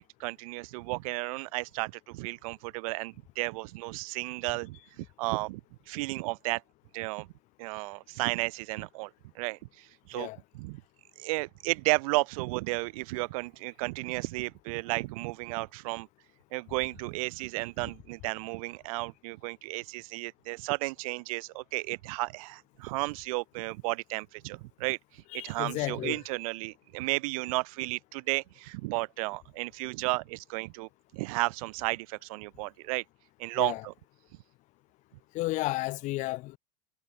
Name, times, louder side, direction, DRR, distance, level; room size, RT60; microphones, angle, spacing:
voice 1, 0.0-5.6 5.9-6.6 6.9-7.3 7.6-9.1 9.3-10.3 10.5-10.8 11.2-16.1 16.5-33.0 33.4-33.9, right 24 dB, 60° right, 7.9 m, -33 dB
voice 2, 25.3-26.2 33.6-33.8 35.3-36.6, left 19 dB, 35° left, 2.0 m, -32 dB
supercardioid pair, 165°, 20 cm